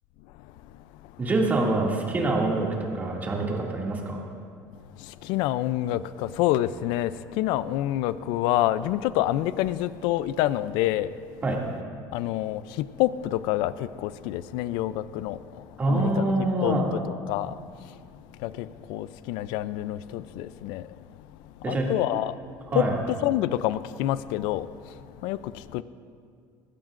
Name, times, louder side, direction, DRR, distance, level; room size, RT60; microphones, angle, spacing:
voice 1, 1.2-4.2 11.4-11.6 15.8-16.9 21.6-21.9 22.1-22.3 22.7-23.0, right 2 dB, 25° right, 2.3 m, -25 dB
voice 2, 5.2-7.1 7.4-11.1 12.1-15.4 15.9-16.3 16.6-17.0 17.3-17.5 18.4-20.8 21.7-22.3 22.7-22.8 23.2-24.7 25.2-25.4 25.7-25.8, left 14 dB, 85° left, 0.4 m, -27 dB
20.0 x 16.5 x 2.5 m
cardioid pair, 145°, 8 cm